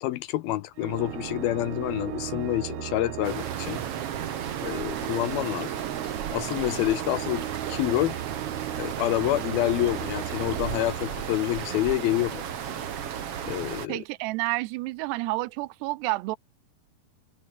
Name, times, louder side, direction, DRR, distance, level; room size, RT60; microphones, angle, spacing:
voice 1, 0.0-3.8 4.6-5.7 6.3-8.2 8.7-12.4 13.4-14.0, left 15 dB, 75° left, 2.4 m, -28 dB
Organ, 0.8-11.7, right 12 dB, 70° right, 1.8 m, -36 dB
sound 1, 3.2-13.9, right 9 dB, 50° right, 1.9 m, -34 dB
voice 2, 13.9-16.4, right 20 dB, 90° right, 2.8 m, -29 dB
omnidirectional pair, 4.8 m